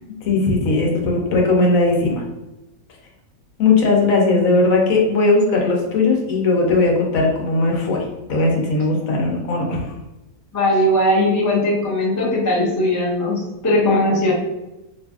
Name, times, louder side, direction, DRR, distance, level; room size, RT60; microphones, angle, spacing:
voice 1, 0.2-2.2 3.6-8.0 8.3-9.9, left 3 dB, 70° left, 0 dB, 1.1 m, -18 dB
voice 2, 10.5-14.3, left 1 dB, 25° left, -4 dB, 0.4 m, -19 dB
2.7 x 2.5 x 3.4 m, 1.0 s
omnidirectional pair, 1.6 m